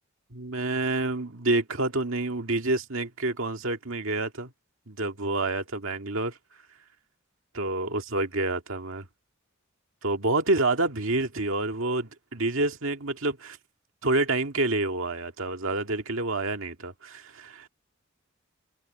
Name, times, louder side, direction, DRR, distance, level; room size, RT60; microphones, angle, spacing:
voice 1, 0.3-4.5 4.9-6.4 7.5-9.1 10.0-13.6 14.0-17.7, right 2 dB, 70° right, 2.1 m, -28 dB
head